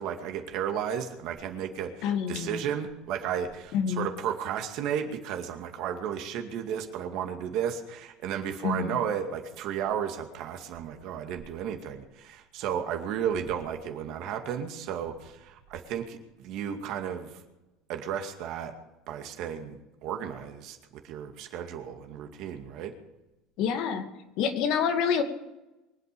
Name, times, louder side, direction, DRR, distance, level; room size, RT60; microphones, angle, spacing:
voice 1, 0.0-17.3 17.9-18.7 19.1-20.8 21.0-22.9, right 8 dB, 65° right, 5 dB, 2.3 m, -33 dB
voice 2, 2.0-2.6 3.7-4.1 8.6-9.0 23.6-24.1 24.4-25.2, left 7 dB, 65° left, 6 dB, 2.2 m, -27 dB
24.0 x 8.2 x 6.9 m, 1.0 s
supercardioid pair, 105°, 0 cm